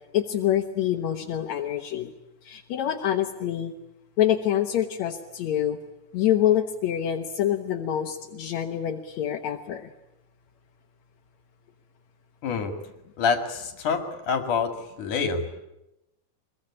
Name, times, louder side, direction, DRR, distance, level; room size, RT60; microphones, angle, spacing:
voice 1, 0.1-2.1 2.4-3.7 4.2-5.8 6.1-9.9, left 11 dB, 70° left, 5 dB, 1.7 m, -26 dB
voice 2, 12.4-12.7 13.2-14.7 15.0-15.6, left 5 dB, 55° left, 6 dB, 3.3 m, -26 dB
24.5 x 22.5 x 9.8 m, 0.90 s
omnidirectional pair, 4.7 m